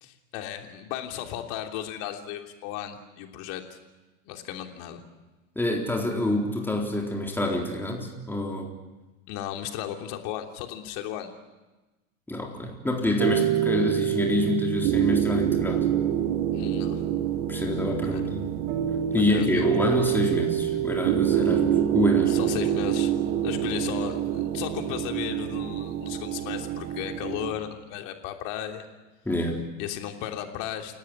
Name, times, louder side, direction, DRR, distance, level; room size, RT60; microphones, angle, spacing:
voice 1, 0.0-3.8 4.2-5.0 9.3-11.3 16.5-17.0 18.1-18.2 19.3-19.7 22.3-23.2 23.4-28.9 29.8-31.0, left 11 dB, 50° left, 4 dB, 3.2 m, -35 dB
voice 2, 5.6-8.8 12.3-15.9 17.5-18.5 19.1-22.4 29.2-29.7, left 2 dB, 5° left, 0 dB, 4.0 m, -27 dB
sound 1, 13.2-27.5, right 10 dB, 55° right, 2.5 m, -26 dB
29.0 x 18.0 x 10.0 m, 1.1 s
figure-of-eight pair, 85°, 41 cm